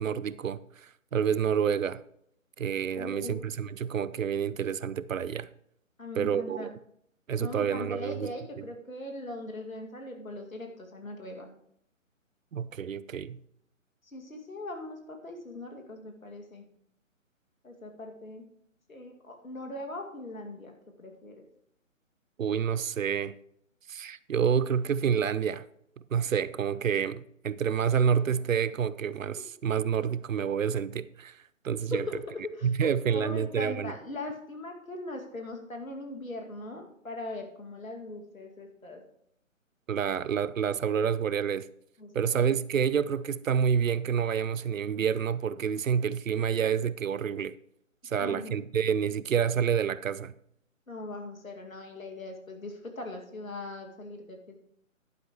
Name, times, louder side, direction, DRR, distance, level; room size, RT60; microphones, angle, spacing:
voice 1, 0.0-2.0 2.6-5.5 6.1-6.7 7.3-8.3 12.5-13.4 22.4-23.3 23.9-25.6 26.1-32.1 32.6-33.9 39.9-41.7 42.1-47.5 48.0-50.3, right 7 dB, 75° right, 0.6 m, -28 dB
voice 2, 2.9-3.4 6.0-6.7 7.4-11.5 14.0-16.7 17.6-18.5 18.9-21.5 31.9-39.1 42.0-42.4 48.2-48.5 50.9-54.6, left 2 dB, 85° left, 2.2 m, -40 dB
11.0 x 10.0 x 3.0 m
figure-of-eight pair, 145°, 40 cm